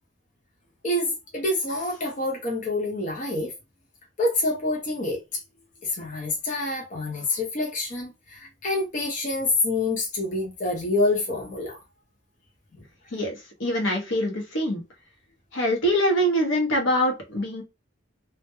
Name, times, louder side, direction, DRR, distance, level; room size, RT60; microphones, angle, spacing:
voice 1, 0.8-3.5 4.2-5.4 5.8-11.8, left 2 dB, 40° left, 0.5 m, -27 dB
voice 2, 13.1-14.8 15.5-17.6, equal, 70° left, 0.7 m, -24 dB
2.2 x 2.0 x 2.8 m
head